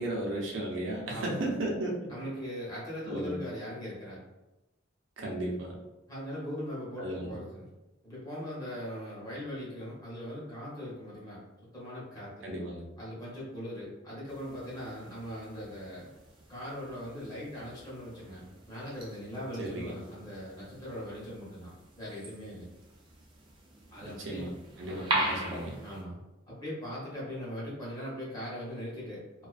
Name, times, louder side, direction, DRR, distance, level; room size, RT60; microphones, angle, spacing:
voice 1, 0.0-2.0 3.1-3.4 5.2-5.8 7.0-7.3 12.4-12.8 19.6-19.9 24.0-24.5 24.8-25.8, right 1 dB, 80° right, -1 dB, 0.6 m, -34 dB
voice 2, 1.1-1.6 2.1-4.2 6.1-7.6 8.0-11.4 11.7-12.4 13.0-16.1 16.5-21.7 22.0-22.7 23.9-24.5 24.9-25.0 25.8-26.2 26.5-29.5, equal, 20° left, -7 dB, 0.9 m, -40 dB
sound 1, 14.3-26.0, right 1 dB, 25° right, 0.4 m, -40 dB
2.4 x 2.2 x 2.4 m, 0.99 s
head